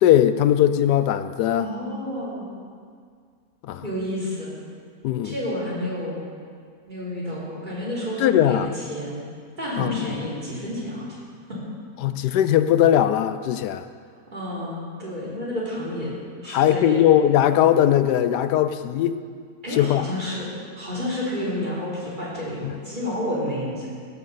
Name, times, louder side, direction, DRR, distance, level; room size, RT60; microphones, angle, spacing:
voice 1, 0.0-1.7 3.6-3.8 5.0-5.4 8.2-8.7 9.8-10.1 12.0-13.9 16.5-19.2 19.7-20.0 22.6-22.7, left 11 dB, 75° left, 12 dB, 1.1 m, -19 dB
voice 2, 1.5-2.5 3.8-4.5 5.2-6.3 6.9-9.3 9.6-11.1 11.5-11.6 14.3-16.1 16.4-17.0 19.6-20.5 20.8-23.9, left 1 dB, 25° right, -6 dB, 3.5 m, -30 dB
16.0 x 6.7 x 6.7 m, 2.1 s
omnidirectional pair, 1.9 m